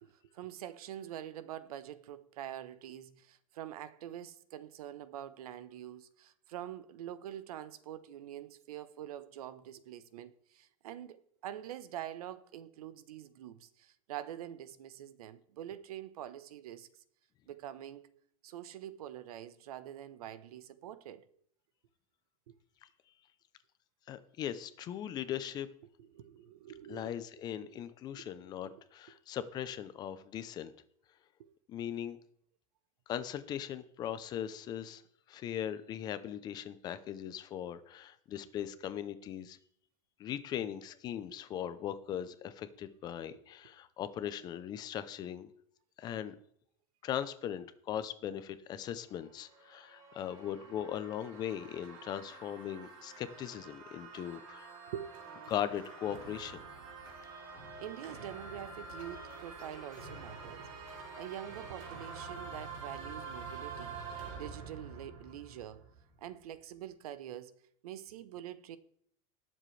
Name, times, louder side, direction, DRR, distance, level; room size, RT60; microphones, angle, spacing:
voice 1, 0.0-11.2 11.4-16.9 17.5-18.1 18.4-21.2 26.0-27.1 28.2-28.3 28.6-28.7 31.4-31.5 43.3-43.4 54.9-55.1 57.8-64.0 64.3-65.8 66.2-67.5 67.8-68.8, right 11 dB, 90° right, 1.0 m, -45 dB
voice 2, 24.1-25.7 26.9-30.7 31.7-32.2 33.1-35.0 35.3-39.6 40.2-45.5 46.0-46.4 47.0-54.7 55.5-56.6, left 10 dB, 20° left, 0.6 m, -39 dB
sound 1, 49.2-66.1, right 4 dB, 65° right, 4.8 m, -47 dB
19.5 x 7.6 x 3.3 m
supercardioid pair, 170°, 19 cm